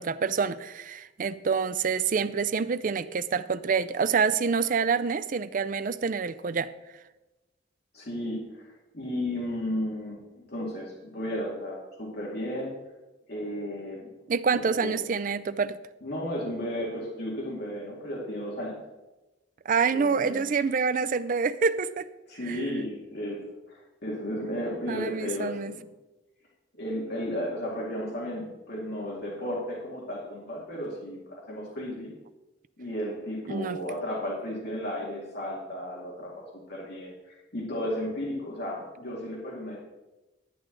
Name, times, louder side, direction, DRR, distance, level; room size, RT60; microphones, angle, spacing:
voice 1, 0.0-6.7 14.3-15.8 19.7-22.1 22.5-22.6 24.9-25.7 33.5-33.8, right 5 dB, 45° right, 14 dB, 0.4 m, -27 dB
voice 2, 7.9-12.7 13.3-14.1 14.6-15.0 16.0-18.8 19.9-20.5 22.3-23.4 23.7-25.9 26.7-32.1 32.8-39.8, equal, 55° left, -4 dB, 2.2 m, -34 dB
11.0 x 9.6 x 3.9 m, 1.1 s
head